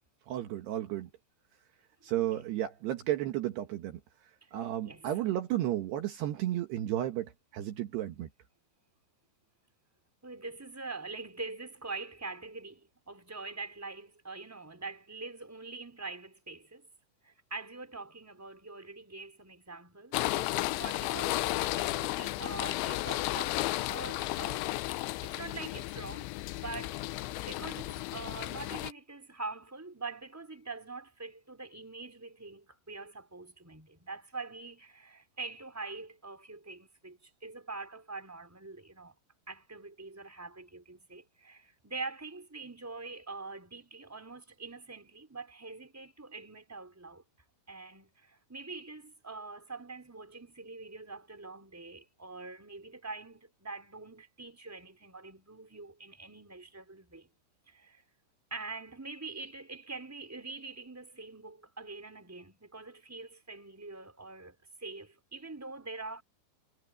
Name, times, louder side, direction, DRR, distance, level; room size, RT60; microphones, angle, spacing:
voice 1, 0.3-1.1 2.0-4.0 4.5-8.3, right 13 dB, 70° right, 3.2 m, -33 dB
voice 2, 10.2-16.9 17.2-27.2 27.5-39.1 39.5-47.2 47.7-57.3 57.7-58.0 58.5-66.2, right 3 dB, 5° right, 3.9 m, -44 dB
sound 1, 20.1-28.9, left 18 dB, 85° left, 3.1 m, -33 dB
omnidirectional pair, 5.4 m